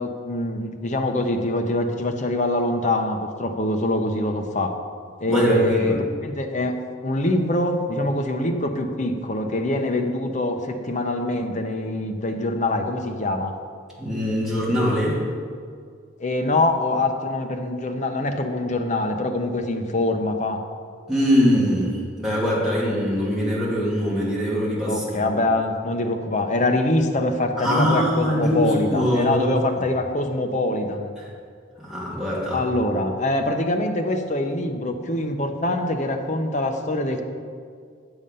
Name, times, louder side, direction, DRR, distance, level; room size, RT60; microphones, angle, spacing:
voice 1, 0.0-4.8 5.2-6.7 7.0-13.5 16.2-20.6 24.9-31.1 32.5-37.2, left 2 dB, 35° left, 4 dB, 0.8 m, -24 dB
voice 2, 5.3-6.0 14.0-15.2 21.1-25.3 27.6-29.5 31.2-31.3 31.8-32.6, equal, ahead, -8 dB, 2.6 m, -22 dB
8.8 x 7.0 x 5.5 m, 2.1 s
head